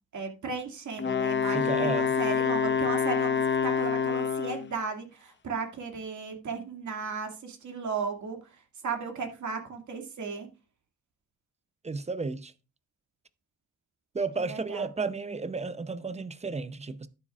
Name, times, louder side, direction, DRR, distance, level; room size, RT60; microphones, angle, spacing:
voice 1, 0.1-10.5 14.4-14.9, right 5 dB, 75° right, 2.2 m, -35 dB
Wind instrument woodwind instrument, 1.0-4.7, left 6 dB, 40° left, 0.7 m, -27 dB
voice 2, 1.5-2.1 11.8-12.5 14.1-17.1, right 4 dB, 20° right, 0.6 m, -32 dB
12.0 x 9.9 x 2.4 m
wide cardioid pair, 130°, 30 cm